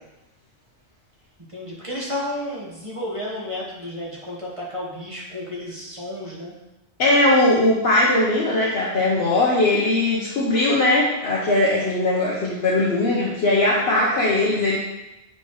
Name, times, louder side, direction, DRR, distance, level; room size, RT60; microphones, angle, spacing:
voice 1, 1.5-6.5, left 1 dB, 30° right, -5 dB, 1.3 m, -32 dB
voice 2, 7.0-14.8, left 2 dB, 70° left, -5 dB, 1.1 m, -19 dB
7.2 x 4.3 x 3.1 m, 0.96 s
omnidirectional pair, 1.1 m